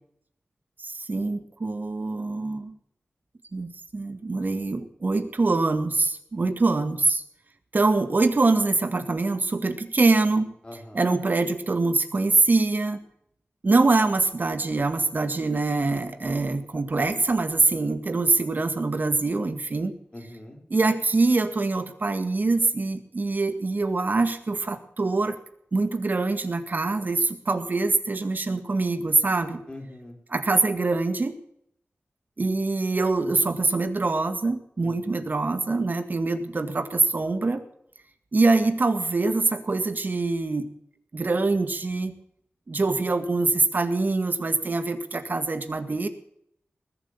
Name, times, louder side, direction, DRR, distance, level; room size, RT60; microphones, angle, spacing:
voice 1, 0.8-2.8 3.5-7.2 7.7-10.5 10.9-13.0 13.6-19.9 20.7-25.4 25.7-29.6 30.3-31.4 32.4-37.6 38.3-40.7 41.1-42.1 42.7-46.1, right 3 dB, 50° right, 8 dB, 1.9 m, -24 dB
voice 2, 10.6-11.0 20.1-20.6 29.7-30.1 34.8-35.1, left 1 dB, 25° left, 2 dB, 3.9 m, -42 dB
20.0 x 7.9 x 7.3 m, 0.71 s
wide cardioid pair, 105°, 4 cm